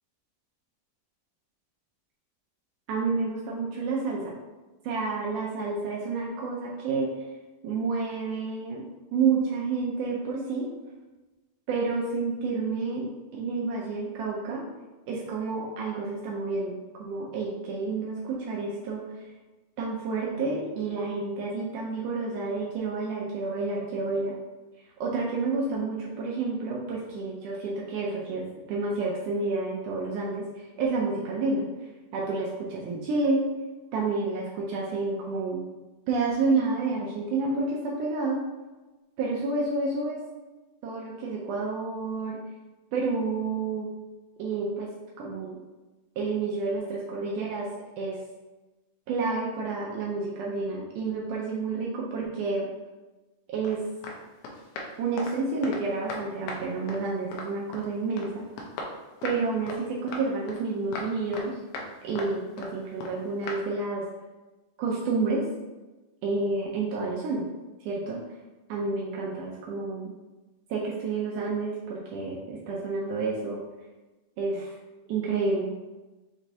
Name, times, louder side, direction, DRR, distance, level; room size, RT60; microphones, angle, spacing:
voice 1, 2.9-4.3 4.8-7.1 7.6-8.8 9.1-10.7 11.7-14.6 15.1-19.0 19.8-24.4 25.0-28.4 28.7-31.7 32.1-33.5 33.9-35.6 36.1-38.4 39.2-40.2 40.8-42.4 42.9-43.9 44.4-44.9 45.2-45.6 46.2-47.7 48.0-48.2 49.1-52.7 53.5-53.8 55.0-58.4 59.2-61.6 62.0-64.0 64.8-65.5 66.2-67.4 67.8-68.2 68.7-70.1 70.7-73.6 74.4-74.8 75.1-75.7, right 3 dB, 85° right, -3 dB, 1.8 m, -29 dB
sound 1, 53.6-53.8 54.0-54.2 54.4-55.8 56.1-56.6 56.9-57.9 58.2-58.3 58.6-59.4 59.7-59.8 60.1-60.6 60.9-61.5 61.7-61.9 62.2-62.7 63.0-63.2 63.4-63.6, left 2 dB, 80° left, 2.4 m, -37 dB
6.3 x 3.0 x 2.7 m, 1.2 s
omnidirectional pair, 4.2 m